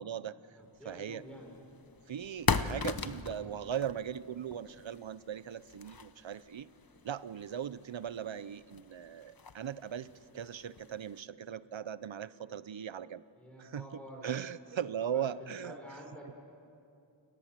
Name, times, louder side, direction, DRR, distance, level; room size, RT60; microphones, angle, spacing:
voice 1, 0.0-0.6 0.9-1.2 2.1-6.7 7.0-13.2 13.6-13.9 14.2-15.8, right 9 dB, 75° right, 17 dB, 0.7 m, -39 dB
voice 2, 0.5-1.6 13.4-14.3 15.0-16.4, equal, 5° left, -1 dB, 5.6 m, -49 dB
sound 1, 0.9-11.2, left 5 dB, 50° left, 0.9 m, -40 dB
28.5 x 20.0 x 7.5 m, 2.6 s
wide cardioid pair, 50°, 46 cm